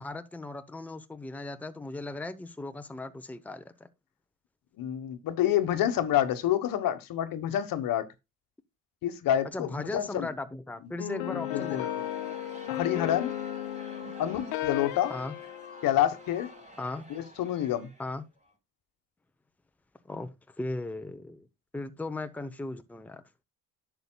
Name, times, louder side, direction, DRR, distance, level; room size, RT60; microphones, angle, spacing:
voice 1, 0.0-3.9 9.4-12.1 14.0-14.1 15.1-15.3 16.8-17.1 18.0-18.2 20.0-21.5 21.7-23.2, left 2 dB, 5° left, 0.8 m, -37 dB
voice 2, 4.8-8.1 9.0-10.3 11.3-11.8 12.7-13.3 14.2-15.2 15.8-16.5 17.1-17.9, left 11 dB, 65° left, 1.2 m, -28 dB
sound 1, 11.0-16.6, left 13 dB, 80° left, 0.9 m, -35 dB
Crowd, 11.2-18.5, right 1 dB, 20° right, 3.9 m, -49 dB
11.0 x 6.9 x 2.2 m
supercardioid pair, 70°, 37 cm